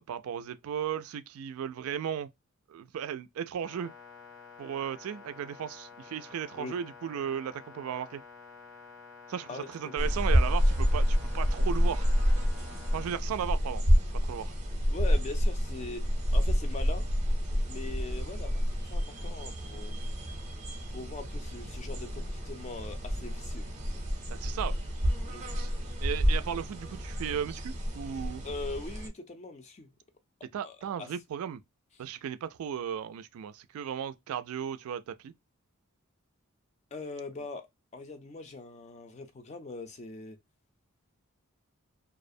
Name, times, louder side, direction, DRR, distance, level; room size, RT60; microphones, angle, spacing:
voice 1, 0.0-2.3 2.7-3.9 4.6-8.2 9.3-12.1 12.9-13.8 14.2-14.5 24.3-24.8 25.5-25.7 26.0-28.4 30.5-31.6 32.0-35.3, right 8 dB, 80° right, 0.3 m, -35 dB
sound 1, 3.6-13.1, left 5 dB, 80° left, 1.0 m, -50 dB
voice 2, 9.5-10.1 14.9-16.0 16.3-17.1 17.6-20.0 20.9-23.7 25.3-25.5 28.4-29.9 30.6-31.1 36.9-37.7 37.9-40.4, left 3 dB, 30° left, 0.4 m, -41 dB
sound 2, 10.0-29.1, equal, 30° right, 0.6 m, -29 dB
2.4 x 2.0 x 2.5 m
head